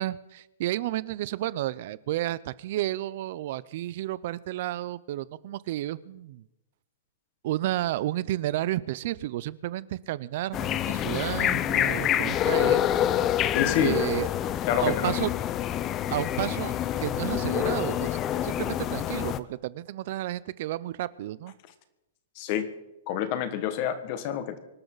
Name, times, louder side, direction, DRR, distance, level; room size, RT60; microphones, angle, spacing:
voice 1, 0.0-6.4 7.4-12.8 13.8-14.3 14.8-15.3 16.1-16.7 17.0-21.5, right 14 dB, 45° right, 19 dB, 0.5 m, -31 dB
sound 1, 10.5-19.4, left 11 dB, 20° left, 0.6 m, -27 dB
voice 2, 13.5-13.9 14.7-15.2 22.3-22.7 23.1-24.6, left 10 dB, 35° left, 11 dB, 1.6 m, -27 dB
25.5 x 12.0 x 4.0 m, 0.92 s
hypercardioid pair, 160°, 0 cm